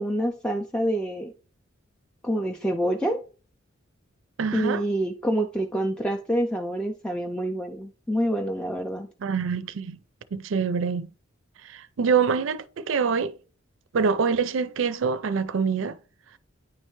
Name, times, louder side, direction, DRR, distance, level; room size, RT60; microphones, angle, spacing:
voice 1, 0.0-1.3 2.2-3.2 4.5-9.1, equal, 5° left, 0.4 m, -27 dB
voice 2, 4.4-4.8 9.2-10.0 10.3-11.1 11.6-13.3 13.9-16.0, right 5 dB, 70° right, 0.4 m, -25 dB
9.5 x 3.3 x 3.1 m
head